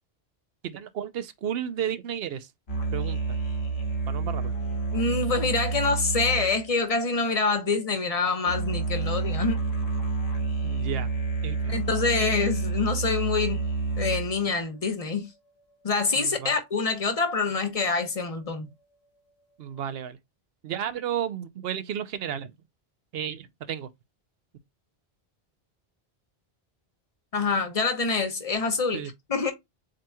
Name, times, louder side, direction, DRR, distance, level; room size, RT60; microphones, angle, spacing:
voice 1, 0.6-2.5 2.9-3.4 4.1-4.6 10.6-11.1 11.4-11.8 16.2-16.5 19.6-20.2 20.6-22.5 23.1-23.9 28.9-29.1, right 9 dB, 70° right, 0.8 m, -33 dB
sound 1, 2.7-7.6 8.5-14.5, right 4 dB, 90° left, 1.6 m, -29 dB
voice 2, 4.9-9.6 11.7-13.6 14.0-15.3 15.8-18.7 27.3-29.0 29.3-29.5, left 4 dB, 35° left, 1.0 m, -26 dB
7.5 x 2.9 x 2.3 m
omnidirectional pair, 1.1 m